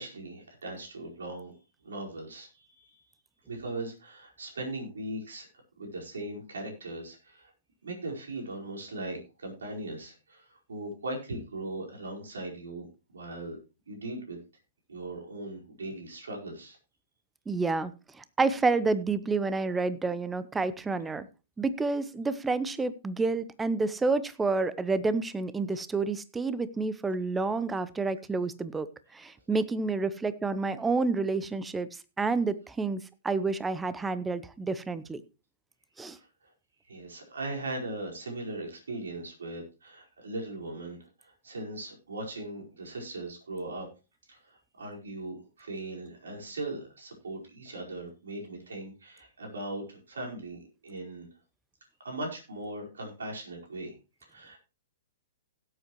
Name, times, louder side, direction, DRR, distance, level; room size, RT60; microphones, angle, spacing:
voice 1, 0.0-1.5 1.8-3.0 3.5-5.5 5.8-7.5 7.8-13.6 13.9-14.4 14.9-16.8 36.2-36.3 36.9-43.9 44.3-51.3 52.0-53.9 54.2-54.6, right 2 dB, 80° right, 0 dB, 4.7 m, -39 dB
voice 2, 17.5-17.9 18.2-21.3 21.6-28.9 29.1-31.9 32.2-35.2 36.0-36.2, right 3 dB, 10° right, 15 dB, 0.8 m, -29 dB
17.0 x 8.1 x 3.1 m, 0.30 s
hypercardioid pair, 120°, 0 cm